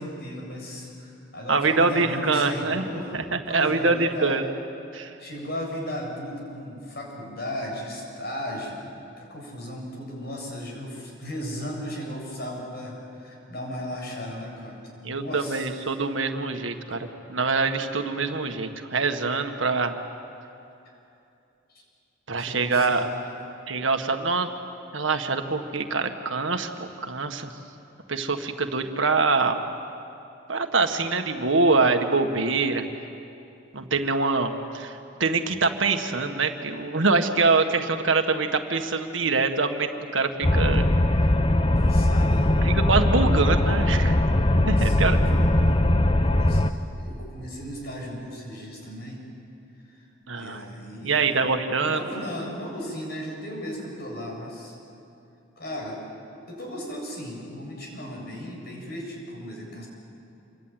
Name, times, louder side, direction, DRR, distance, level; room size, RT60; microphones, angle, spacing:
voice 1, 0.0-3.2 3.5-4.4 5.2-8.8 9.2-15.7 21.7-21.8 22.4-23.3 41.8-42.6 44.8-45.8 46.2-46.6 47.0-49.2 49.9-50.0 50.3-51.4 51.8-54.7 55.6-56.0 56.5-59.9, equal, 55° left, 0 dB, 7.3 m, -36 dB
voice 2, 1.5-2.8 3.1-4.4 4.9-5.1 15.0-19.9 22.3-23.1 23.7-24.5 24.9-27.5 28.1-29.6 30.5-32.8 33.7-40.9 42.6-44.2 44.7-45.2 50.3-50.7 51.0-52.1, right 3 dB, 75° right, 6 dB, 1.7 m, -24 dB
sound 1, 40.4-46.7, left 1 dB, 25° left, 0.8 m, -20 dB
28.0 x 23.5 x 9.2 m, 2.7 s
head